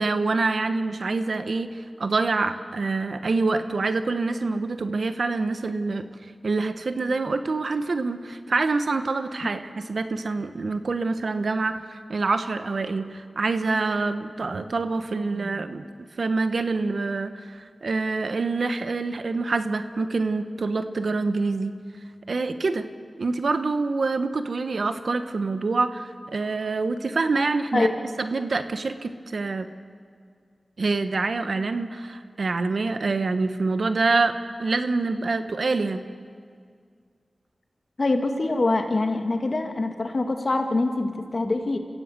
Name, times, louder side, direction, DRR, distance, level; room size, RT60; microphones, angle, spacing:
voice 1, 0.0-6.1 6.4-15.9 16.2-21.7 22.3-22.8 23.2-27.9 28.2-29.7 30.8-34.3 34.6-36.0, right 3 dB, 75° right, 9 dB, 1.2 m, -26 dB
voice 2, 38.0-41.8, left 2 dB, 55° left, 4 dB, 2.4 m, -24 dB
27.5 x 16.0 x 7.6 m, 2.1 s
cardioid pair, 40°, 0 cm